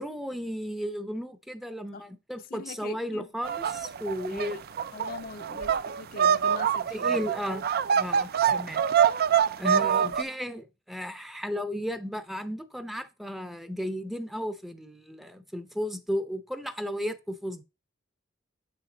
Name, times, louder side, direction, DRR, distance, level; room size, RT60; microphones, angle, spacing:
voice 1, 0.0-4.6 6.9-7.7 8.0-8.8 9.6-17.6, equal, ahead, 0.6 m, -34 dB
voice 2, 2.4-3.3 4.3-4.6 4.9-7.3 9.8-10.1, left 4 dB, 50° left, 0.5 m, -43 dB
sound 1, 3.4-10.2, right 8 dB, 50° right, 0.4 m, -25 dB
7.9 x 5.9 x 3.9 m
head